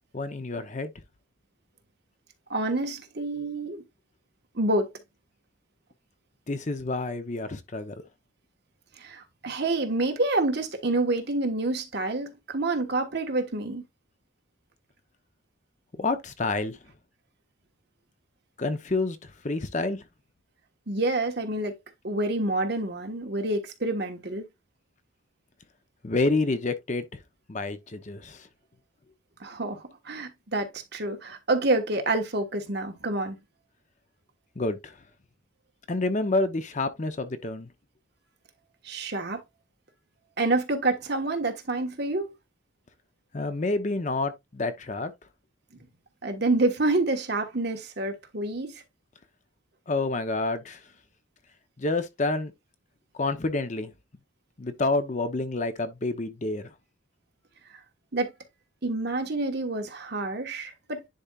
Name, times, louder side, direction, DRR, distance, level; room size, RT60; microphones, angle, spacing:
voice 1, 0.1-0.9 6.5-7.9 16.0-16.8 18.6-20.0 26.0-27.0 27.5-28.5 34.6-34.9 35.9-37.7 43.3-45.1 49.9-50.8 51.8-52.5 53.2-53.9 54.6-56.6, left 2 dB, 35° left, 0.7 m, -28 dB
voice 2, 2.5-3.8 4.5-4.9 9.0-13.8 20.9-21.8 22.0-24.4 29.4-33.4 38.8-39.4 40.4-42.3 45.7-45.8 46.2-48.8 58.1-58.3 58.8-61.1, right 2 dB, 50° right, 1.3 m, -28 dB
10.0 x 4.3 x 2.4 m
head